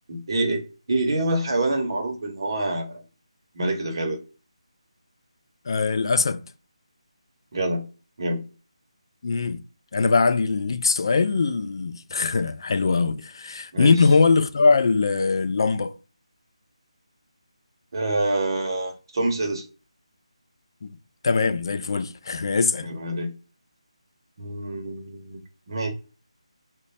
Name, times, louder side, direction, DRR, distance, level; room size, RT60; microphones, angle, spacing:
voice 1, 0.1-0.6 0.9-3.0 3.5-4.2 7.5-7.9 8.2-8.4 13.7-14.0 17.9-19.7 22.8-23.3 24.4-25.4 25.7-25.9, right 2 dB, 40° right, 0.8 m, -26 dB
voice 2, 5.7-6.4 9.2-9.6 9.9-16.0 20.8-21.0 21.2-22.9, left 4 dB, 40° left, 0.3 m, -22 dB
3.1 x 2.2 x 4.0 m
figure-of-eight pair, 170°, 3 cm